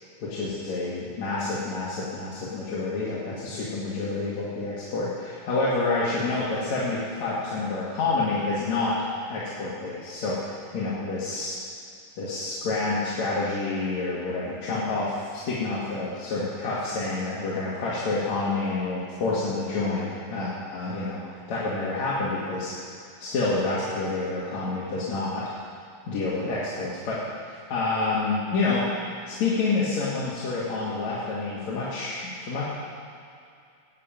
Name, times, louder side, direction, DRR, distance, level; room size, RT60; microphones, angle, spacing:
voice 1, 0.2-9.0 9.3-10.4 10.7-11.5 12.2-21.2 21.5-22.7 23.2-25.5 26.1-27.2 27.7-32.7, left 3 dB, 55° left, -8 dB, 3.1 m, -28 dB
18.5 x 6.8 x 8.9 m, 2.5 s
omnidirectional pair, 4.1 m